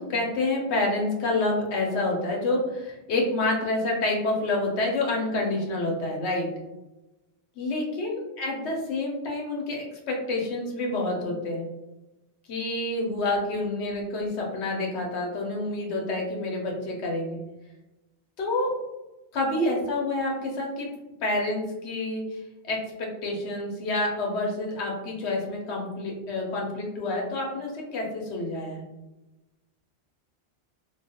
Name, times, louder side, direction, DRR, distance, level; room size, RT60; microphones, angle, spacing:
voice 1, 0.0-6.5 7.6-11.6 12.5-17.4 18.4-18.7 19.3-20.9 21.2-28.8, left 2 dB, 85° left, -1 dB, 1.0 m, -28 dB
2.4 x 2.3 x 2.8 m, 1.0 s
omnidirectional pair, 1.1 m